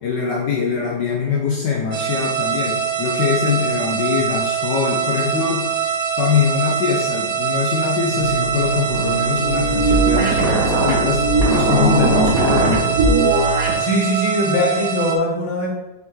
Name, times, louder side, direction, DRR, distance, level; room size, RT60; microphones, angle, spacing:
voice 1, 0.0-12.9, left 5 dB, 65° left, -2 dB, 1.2 m, -22 dB
sound 1, 1.9-15.2, right 7 dB, 65° right, 0.9 m, -23 dB
sound 2, 8.1-13.8, right 2 dB, 50° right, 1.2 m, -19 dB
voice 2, 13.8-15.7, equal, 20° left, -3 dB, 1.1 m, -20 dB
6.4 x 4.4 x 3.6 m, 1.0 s
omnidirectional pair, 2.4 m